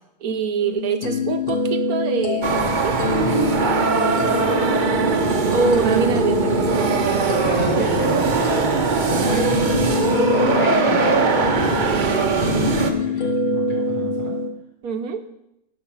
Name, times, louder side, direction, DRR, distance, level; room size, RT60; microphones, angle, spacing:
voice 1, 0.2-3.0 4.2-4.4 5.5-6.9 7.2-7.5 14.8-15.2, right 5 dB, 70° right, 7 dB, 1.3 m, -25 dB
sound 1, 0.6-14.5, left 4 dB, 40° left, 1.0 m, -26 dB
sound 2, 2.4-12.9, right 4 dB, 40° right, 0.8 m, -20 dB
voice 2, 5.1-5.5 7.3-8.8 9.1-9.5 10.3-11.2 11.6-14.3, left 1 dB, 70° left, -4 dB, 5.0 m, -31 dB
12.5 x 5.5 x 7.3 m, 0.84 s
omnidirectional pair, 1.7 m